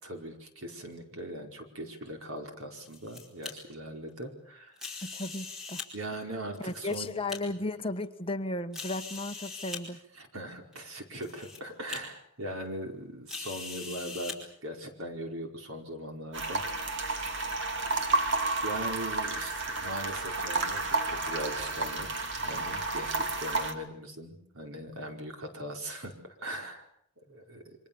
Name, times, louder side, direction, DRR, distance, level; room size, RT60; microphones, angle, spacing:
voice 1, 0.0-5.1 5.9-7.1 7.4-7.6 10.1-14.3 14.6-16.6 18.6-26.9 27.3-27.7, right 1 dB, 85° right, 3 dB, 4.9 m, -40 dB
sound 1, 2.6-3.5 4.8-5.9 6.6-7.4 8.0-8.1 8.7-9.8 10.7-10.8 11.2-11.6 11.9-12.0 13.3-14.4, left 4 dB, ahead, 4.9 m, -41 dB
voice 2, 5.0-5.8 6.6-10.0, left 2 dB, 25° left, 7 dB, 1.3 m, -35 dB
sound 2, 16.3-23.7, right 3 dB, 60° right, 2.7 m, -31 dB
28.5 x 24.5 x 7.1 m, 0.69 s
head